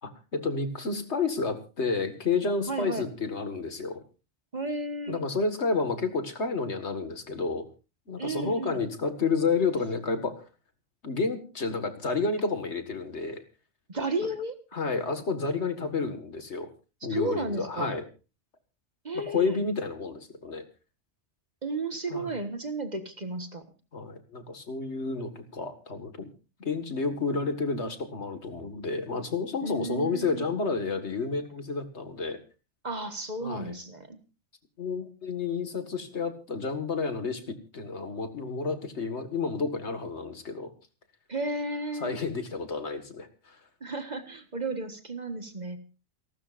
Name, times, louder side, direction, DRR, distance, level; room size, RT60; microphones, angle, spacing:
voice 1, 0.0-4.0 5.1-7.6 8.1-10.5 11.0-13.4 14.7-16.7 17.0-18.0 19.1-20.7 22.1-22.3 23.9-26.3 26.6-32.4 33.4-33.8 34.8-40.7 42.0-43.6, left 4 dB, 70° left, 8 dB, 2.1 m, -30 dB
voice 2, 2.7-3.1 4.5-5.2 8.2-8.8 13.9-14.6 17.1-17.9 19.0-19.6 21.6-23.6 29.6-30.4 32.8-34.2 41.3-42.2 43.8-45.8, right 2 dB, 40° right, 8 dB, 1.6 m, -33 dB
29.0 x 12.5 x 2.5 m, 0.32 s
omnidirectional pair, 1.2 m